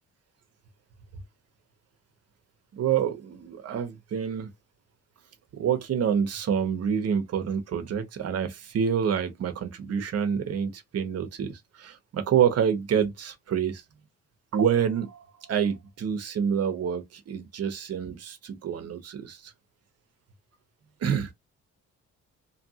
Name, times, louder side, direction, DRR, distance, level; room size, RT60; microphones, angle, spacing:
voice 1, 2.7-4.5 5.5-13.8 14.5-19.5 21.0-21.3, right 8 dB, 55° right, 0.8 m, -27 dB
2.7 x 2.5 x 2.7 m
cardioid pair, 90°, 30 cm